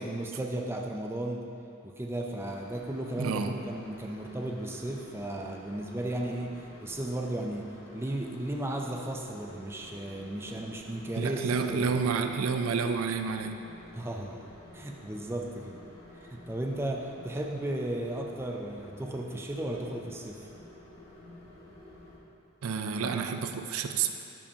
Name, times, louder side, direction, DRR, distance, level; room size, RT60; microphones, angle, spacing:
voice 1, 0.0-1.5 1.8-12.0 13.9-14.5 14.7-15.8 16.2-20.5, right 1 dB, 10° right, 1 dB, 0.4 m, -35 dB
sound 1, 2.4-22.2, left 1 dB, 65° left, 1.5 m, -51 dB
voice 2, 3.2-3.6 11.2-13.7 22.6-24.1, right 5 dB, 75° right, 7 dB, 0.4 m, -30 dB
12.0 x 5.4 x 2.8 m, 2.6 s
head